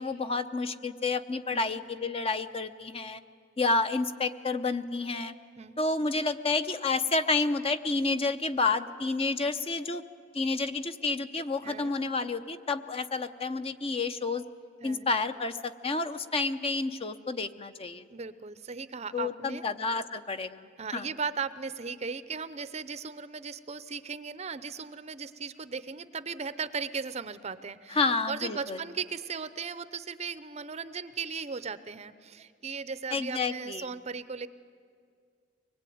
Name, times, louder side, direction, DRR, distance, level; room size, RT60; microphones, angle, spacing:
voice 1, 0.0-3.2 3.6-5.3 5.8-10.0 10.3-14.4 14.8-18.0 19.1-20.7 20.9-21.1 27.9-28.8 33.1-33.9, left 3 dB, 30° left, 9 dB, 0.7 m, -30 dB
voice 2, 11.6-12.0 14.8-15.1 18.1-19.6 20.8-34.5, right 5 dB, 35° right, 14 dB, 0.6 m, -37 dB
23.5 x 20.5 x 9.3 m, 2.2 s
head